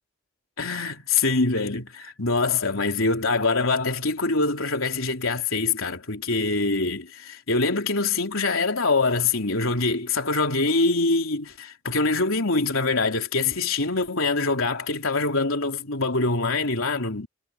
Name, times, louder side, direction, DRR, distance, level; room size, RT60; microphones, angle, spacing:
voice 1, 0.6-17.3, left 3 dB, 80° left, 3.5 m, -24 dB
head